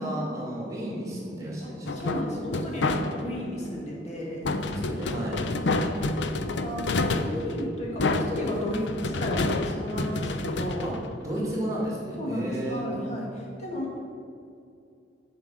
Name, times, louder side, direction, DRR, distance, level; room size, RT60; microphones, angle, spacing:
voice 1, 0.0-1.9 4.6-5.4 10.8-10.9 11.2-12.9, right 1 dB, 20° right, -5 dB, 2.3 m, -32 dB
voice 2, 1.6-4.4 5.6-10.9 12.2-14.0, equal, 40° left, -3 dB, 1.7 m, -34 dB
sound 1, 1.9-3.4 4.5-11.6, left 2 dB, 85° left, 0.6 m, -29 dB
7.4 x 5.2 x 7.2 m, 2.5 s
head